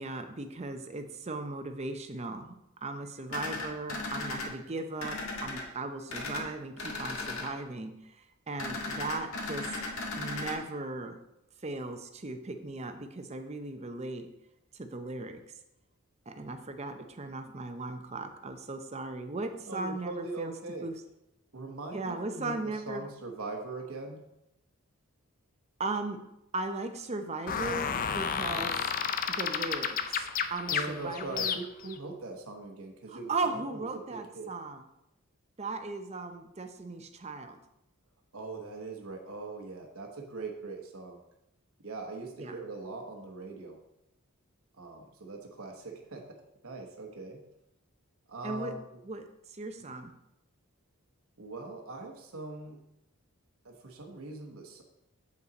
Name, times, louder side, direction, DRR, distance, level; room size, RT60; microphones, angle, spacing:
voice 1, 0.0-2.5 2.8-8.2 8.5-9.6 10.2-11.2 11.6-14.3 14.7-15.4 16.3-20.5 20.8-20.9 21.9-23.1 25.8-26.2 26.5-28.8 29.3-31.6 33.1-34.8 35.6-37.6 42.4-42.5 48.4-48.7 49.0-49.2 49.5-50.1, right 3 dB, 30° right, 7 dB, 0.6 m, -37 dB
sound 1, 3.3-4.5 5.0-5.6 6.1-6.4 6.8-7.5 8.6-10.5, left 3 dB, 70° left, 1.6 m, -36 dB
voice 2, 19.7-20.9 21.5-24.2 30.7-34.5 38.3-41.2 41.8-43.8 44.8-46.2 46.6-47.4 48.3-48.8 51.4-52.8 53.6-54.8, right 3 dB, 70° right, 2 dB, 1.1 m, -41 dB
sound 2, 27.5-31.9, left 7 dB, 40° left, 0.4 m, -32 dB
8.0 x 5.6 x 4.0 m, 0.84 s
head